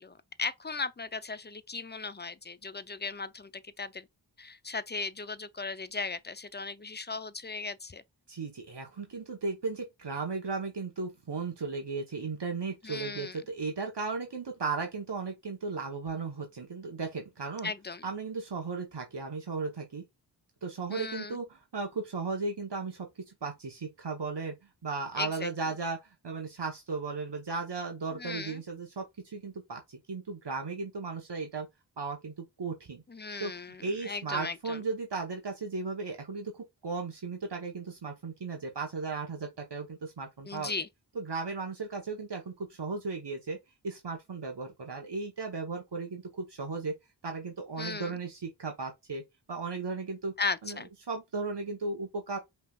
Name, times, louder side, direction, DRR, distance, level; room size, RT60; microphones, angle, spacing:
voice 1, 0.0-4.1 4.4-8.0 12.8-13.4 17.6-18.0 20.9-21.4 25.2-25.5 28.1-28.6 33.1-34.8 40.5-40.9 47.8-48.2 50.4-50.9, left 4 dB, 25° left, 0.5 m, -37 dB
voice 2, 8.3-17.7 18.0-20.0 20.6-24.5 24.8-31.7 32.0-33.0 33.4-40.7 41.1-43.6 43.8-46.9 47.2-49.2 49.5-50.3 50.6-52.4, right 4 dB, 80° right, 1.1 m, -36 dB
5.5 x 3.4 x 2.3 m
wide cardioid pair, 50°, 41 cm